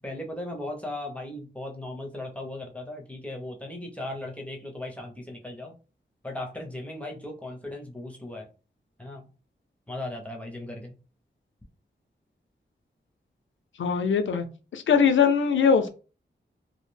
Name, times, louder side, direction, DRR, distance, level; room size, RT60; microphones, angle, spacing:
voice 1, 0.0-5.7 6.2-8.5 9.0-9.3 9.9-11.0, left 1 dB, 5° left, 1 dB, 0.5 m, -37 dB
voice 2, 13.8-14.5 14.7-15.9, left 6 dB, 85° left, 9 dB, 0.4 m, -21 dB
2.4 x 2.1 x 3.1 m, 0.35 s
wide cardioid pair, 120°, 19 cm